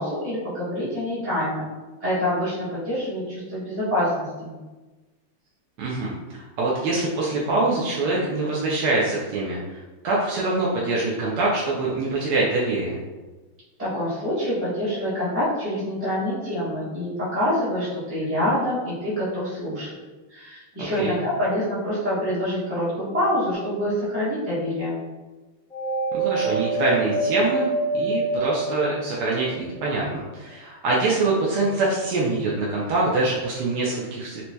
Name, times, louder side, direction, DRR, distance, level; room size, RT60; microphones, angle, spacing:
voice 1, 0.0-1.7 2.0-4.5 13.8-19.9 20.3-25.0, left 1 dB, 10° right, -12 dB, 0.6 m, -26 dB
voice 2, 5.8-9.8 10.0-13.0 20.8-21.2 26.1-34.4, right 2 dB, 70° right, -5 dB, 1.0 m, -24 dB
sound 1, 23.5-24.3 25.7-29.5, right 3 dB, 35° left, 0.5 m, -26 dB
4.3 x 2.7 x 2.2 m, 1.2 s
omnidirectional pair, 2.3 m